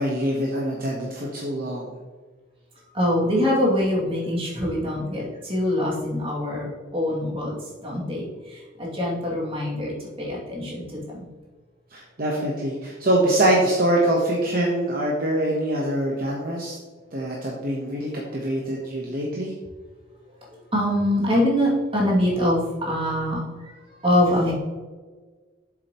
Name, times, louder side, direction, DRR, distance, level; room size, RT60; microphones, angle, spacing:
voice 1, 0.0-1.9 11.9-16.8 17.1-19.5, right 1 dB, 45° right, -3 dB, 1.2 m, -24 dB
voice 2, 2.9-7.6 7.8-9.9 10.2-11.3 20.7-23.7 24.0-24.5, left 1 dB, 30° right, -5 dB, 2.6 m, -24 dB
7.9 x 7.5 x 3.1 m, 1.4 s
head